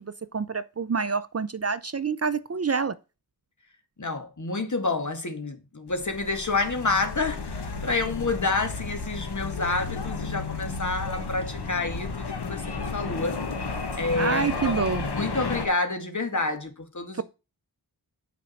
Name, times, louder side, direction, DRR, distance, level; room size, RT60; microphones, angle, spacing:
voice 1, 0.0-2.9 14.2-15.0, right 5 dB, 40° right, 0.6 m, -27 dB
voice 2, 4.0-13.4 14.0-14.8 15.2-17.2, left 3 dB, 45° left, 2.0 m, -29 dB
sound 1, 5.9-15.7, left 4 dB, 90° left, 1.7 m, -33 dB
9.0 x 5.2 x 5.6 m
wide cardioid pair, 75°, 39 cm